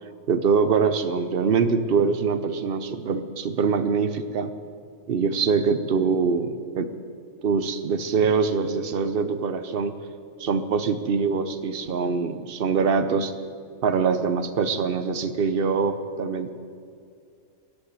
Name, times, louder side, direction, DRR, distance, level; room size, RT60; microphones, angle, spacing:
voice 1, 0.3-4.5 5.1-6.9 7.4-10.0 10.4-13.3 13.8-16.5, right 5 dB, 50° right, 11 dB, 0.8 m, -24 dB
14.5 x 8.0 x 9.0 m, 2.3 s
omnidirectional pair, 1.6 m